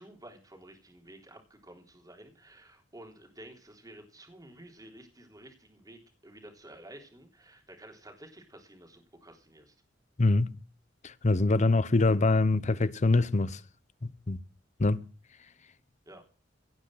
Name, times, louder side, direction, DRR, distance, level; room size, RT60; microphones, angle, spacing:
voice 1, 0.0-9.7 16.1-16.3, right 1 dB, 20° right, 3.6 m, -51 dB
voice 2, 10.2-10.6 11.0-13.6 14.0-14.4 14.8-15.0, left 2 dB, 40° left, 0.8 m, -24 dB
17.5 x 6.2 x 7.8 m
head